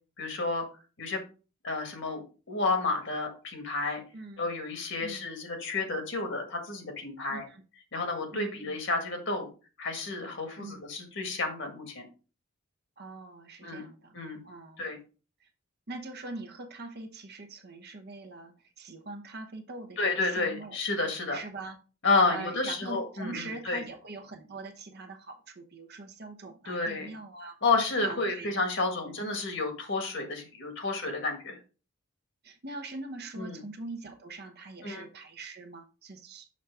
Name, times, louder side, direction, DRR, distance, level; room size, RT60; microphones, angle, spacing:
voice 1, 0.2-0.6 1.0-1.2 1.6-4.0 4.4-7.4 7.9-9.5 9.8-12.1 13.6-13.8 14.1-14.4 14.8-15.0 20.0-21.4 22.0-23.8 26.7-27.1 27.6-31.6 33.4-33.6 34.8-35.1, left 3 dB, 60° left, 1.7 m, -31 dB
voice 2, 7.3-7.6 8.3-8.8 10.6-10.8 13.0-14.2 14.4-14.8 15.4-15.5 15.9-20.8 21.3-21.8 22.2-27.6 28.0-28.5 29.0-29.2 32.4-36.5, right 3 dB, 50° right, 0.9 m, -42 dB
6.3 x 5.5 x 3.5 m
head